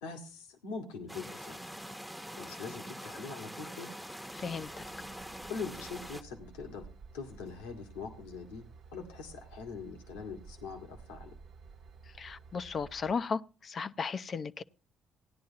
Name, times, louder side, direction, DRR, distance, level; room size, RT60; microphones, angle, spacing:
voice 1, 0.0-1.6 2.4-3.9 5.5-6.9 7.1-11.4, left 5 dB, 85° left, 1.6 m, -43 dB
sound 1, 1.1-6.2, equal, ahead, 0.9 m, -44 dB
voice 2, 4.3-4.8 12.2-14.6, left 5 dB, 50° left, 0.6 m, -35 dB
Train / Engine, 4.4-13.1, right 5 dB, 65° right, 1.0 m, -53 dB
17.0 x 10.5 x 2.8 m
hypercardioid pair, 50°, 0 cm